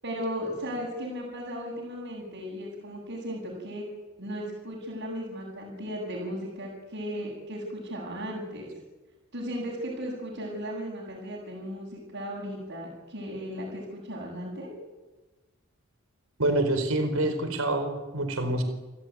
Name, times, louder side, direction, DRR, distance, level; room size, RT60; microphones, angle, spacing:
voice 1, 0.0-3.9 4.2-8.7 9.3-14.7, equal, 60° right, -6 dB, 8.0 m, -36 dB
voice 2, 16.4-18.6, right 1 dB, 80° right, 7 dB, 4.4 m, -26 dB
29.5 x 16.5 x 9.6 m, 1.2 s
head